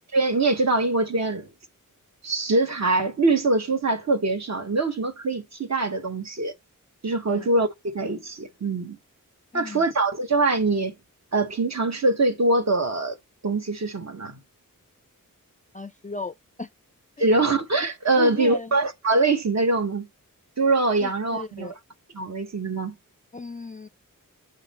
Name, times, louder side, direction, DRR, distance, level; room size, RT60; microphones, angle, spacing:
voice 1, 0.1-1.5 2.2-6.5 7.0-9.0 9.5-10.9 11.3-13.2 13.4-14.4 17.2-20.1 20.6-21.7 22.1-22.9, right 2 dB, 50° right, 1.0 m, -23 dB
voice 2, 9.5-9.8 15.7-16.7 17.2-17.3 18.2-18.8 21.0-21.7 23.3-23.9, left 3 dB, 25° left, 0.3 m, -36 dB
7.4 x 3.9 x 4.1 m
wide cardioid pair, 100°, 34 cm